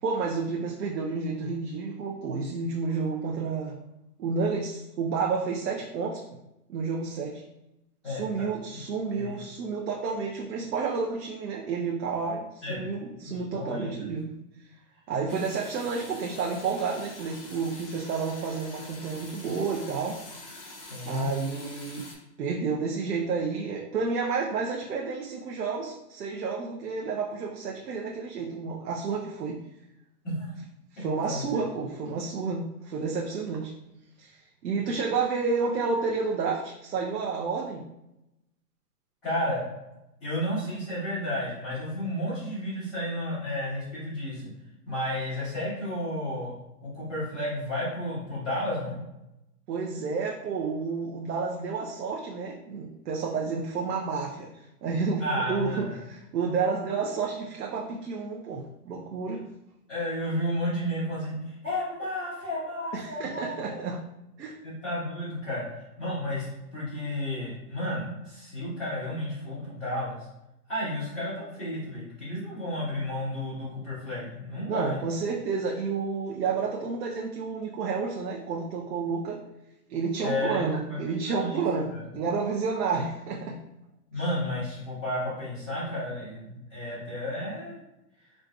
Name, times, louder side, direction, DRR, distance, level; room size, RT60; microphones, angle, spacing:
voice 1, 0.0-3.8 4.2-6.2 6.7-7.4 8.0-14.3 15.1-20.6 21.0-22.1 22.4-29.6 30.9-33.7 34.2-37.8 49.7-59.4 62.9-64.0 64.4-64.6 74.7-79.4 79.9-83.6, right 4 dB, 90° right, -1 dB, 0.7 m, -30 dB
voice 2, 8.0-8.5 9.1-9.4 12.6-12.8 13.2-14.1 15.3-15.4 20.9-21.3 30.2-30.5 31.0-31.4 39.2-39.7 40.2-44.5 44.8-46.5 46.8-49.0 55.2-56.0 59.9-63.8 64.6-70.3 70.7-75.0 80.2-82.0 84.1-87.8, left 1 dB, ahead, -22 dB, 0.6 m, -32 dB
sound 1, 15.3-22.1, left 2 dB, 35° left, 0.9 m, -45 dB
5.0 x 2.6 x 2.3 m, 0.91 s
hypercardioid pair, 165°, 47 cm